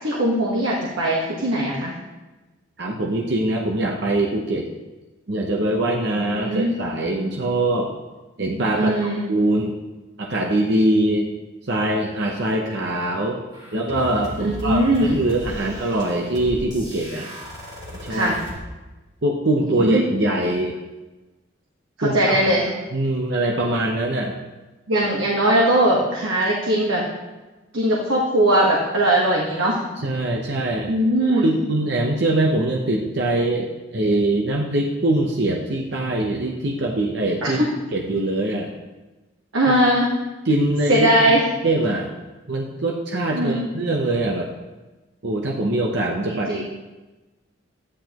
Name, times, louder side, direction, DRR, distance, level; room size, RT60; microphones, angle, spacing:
voice 1, 0.0-1.9 6.2-6.7 8.7-9.2 14.4-15.2 18.1-18.4 19.6-20.2 22.0-22.6 24.9-27.0 27.7-29.8 30.9-31.5 37.4-37.7 39.5-40.1 40.9-41.4 43.3-43.7 46.3-46.6, right 1 dB, 90° right, -4 dB, 1.4 m, -20 dB
voice 2, 2.8-4.7 5.3-7.9 8.4-8.9 9.3-9.7 10.2-11.3 11.7-13.4 13.7-17.3 18.0-18.3 19.2-20.7 22.0-22.5 22.9-24.3 30.0-30.9 31.4-37.6 37.9-38.7 39.7-39.8 40.5-41.1 41.6-42.1 42.5-44.5 45.2-46.6, right 1 dB, 55° right, 0 dB, 0.8 m, -23 dB
sound 1, 13.5-18.6, equal, 20° right, 2.5 m, -36 dB
12.5 x 9.9 x 3.0 m, 1.1 s
head